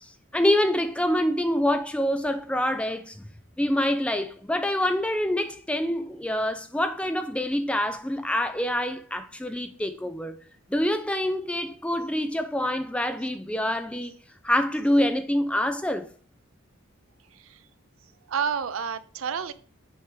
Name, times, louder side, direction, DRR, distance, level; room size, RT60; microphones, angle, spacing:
voice 1, 0.0-3.3 3.6-10.4 10.7-14.1 14.4-16.1, left 1 dB, 5° left, 0.4 m, -26 dB
voice 2, 17.3-17.7 18.0-19.5, right 6 dB, 80° right, 0.5 m, -30 dB
6.4 x 4.5 x 3.3 m
head